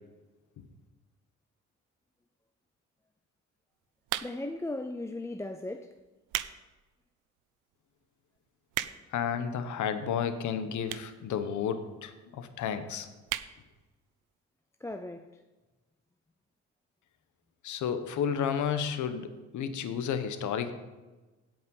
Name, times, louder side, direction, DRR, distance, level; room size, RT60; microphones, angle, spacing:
sound 1, 4.0-4.6 5.3-5.5 6.0-6.6 7.0-7.1 7.7-7.8 8.0-8.1 8.4-9.2 10.0-10.1 10.8-11.2 11.5-11.6 11.8-11.9 12.1-12.2 12.5-12.8 13.2-13.5 13.9-14.0 14.2-14.3, right 14 dB, 90° right, 0.5 m, -35 dB
voice 1, 4.2-6.0 14.8-15.4, left 2 dB, 10° left, 0.5 m, -37 dB
voice 2, 9.1-13.1 17.6-20.7, left 7 dB, 75° left, 1.1 m, -32 dB
16.0 x 5.4 x 5.5 m
cardioid pair, 90°, 30 cm